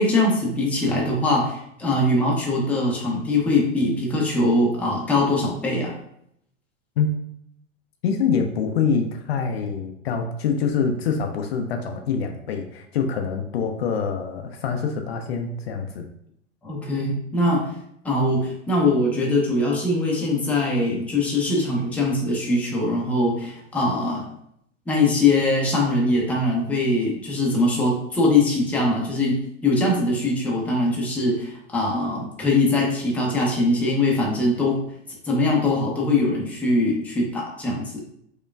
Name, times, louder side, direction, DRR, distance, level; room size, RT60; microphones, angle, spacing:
voice 1, 0.0-5.9 16.6-17.7 18.0-24.3 24.9-34.8 35.2-38.0, left 2 dB, 5° left, -3 dB, 0.6 m, -22 dB
voice 2, 8.0-16.1, left 6 dB, 55° left, 4 dB, 0.5 m, -25 dB
4.5 x 2.2 x 2.2 m, 0.72 s
figure-of-eight pair, 95°, 38 cm